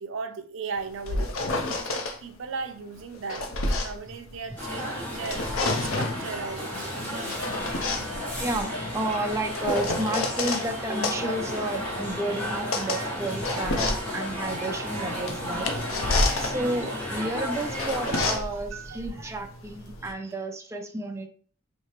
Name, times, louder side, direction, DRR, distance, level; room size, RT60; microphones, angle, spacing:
voice 1, 0.0-1.4 1.8-5.5 5.8-7.0 13.5-15.2 15.5-17.5 18.1-19.0, right 5 dB, 70° right, 8 dB, 0.5 m, -38 dB
sound 1, 0.8-2.2 3.0-4.8 5.1-6.2 7.0-10.7 11.0-20.1, left 2 dB, 85° left, 0.7 m, -30 dB
sound 2, 4.6-18.4, equal, 10° left, 1.4 m, -33 dB
voice 2, 8.4-13.9 14.1-15.7 16.4-21.3, right 1 dB, 15° right, 3 dB, 0.4 m, -31 dB
4.4 x 2.8 x 3.0 m, 0.43 s
head